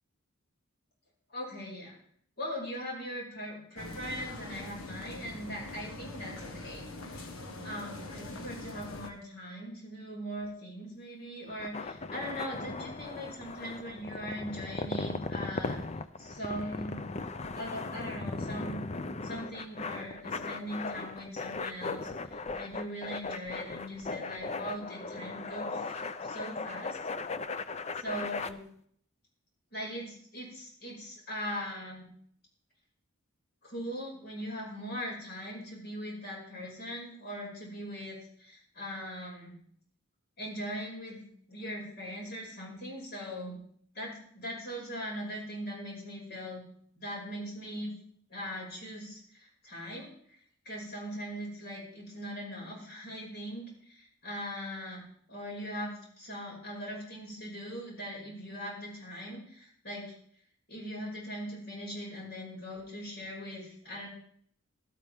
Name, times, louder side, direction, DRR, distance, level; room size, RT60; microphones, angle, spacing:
voice 1, 1.3-2.0 2.4-7.2 7.6-15.8 16.2-17.0 17.5-18.8 19.2-22.1 22.6-27.0 28.0-28.6 29.7-32.0 33.6-39.6 40.4-41.2 41.5-43.6 43.9-46.7 47.0-47.9 48.3-50.4 50.6-60.1 60.7-64.1, equal, 50° left, -3 dB, 5.8 m, -40 dB
sound 1, 3.8-9.1, left 2 dB, 90° left, 1.5 m, -43 dB
sound 2, 11.5-28.5, left 3 dB, 35° left, 0.6 m, -38 dB
17.0 x 12.5 x 3.6 m, 0.62 s
head